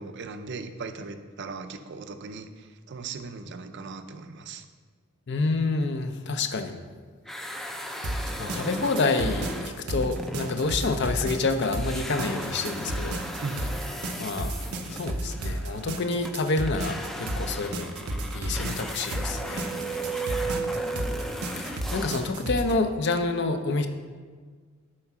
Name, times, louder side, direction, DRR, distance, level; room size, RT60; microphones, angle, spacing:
voice 1, 0.0-4.7 13.4-13.7 20.4-20.8, right 4 dB, 55° right, 9 dB, 0.5 m, -38 dB
voice 2, 5.3-6.8 8.1-13.2 14.2-14.5 14.9-17.9 18.3-19.7 21.6-23.9, left 3 dB, 50° left, 7 dB, 0.6 m, -28 dB
sound 1, 7.2-11.3 11.6-22.4, equal, ahead, 0.4 m, -38 dB
sound 2, 8.0-22.7, right 1 dB, 85° right, 0.7 m, -33 dB
sound 3, 18.8-21.7, right 5 dB, 90° left, 2.2 m, -34 dB
7.7 x 4.6 x 5.9 m, 1.5 s
head